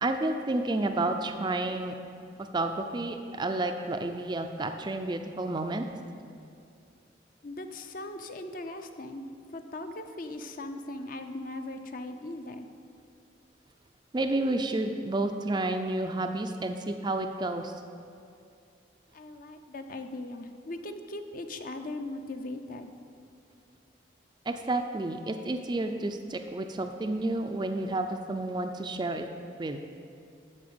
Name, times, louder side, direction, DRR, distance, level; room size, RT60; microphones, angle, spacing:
voice 1, 0.0-1.9 2.4-5.9 14.1-17.7 24.5-29.3 29.6-29.8, right 2 dB, 25° right, 5 dB, 0.4 m, -30 dB
voice 2, 7.4-9.3 9.5-12.7 19.1-22.9, left 2 dB, 45° left, 6 dB, 0.6 m, -39 dB
12.5 x 4.3 x 7.0 m, 2.4 s
head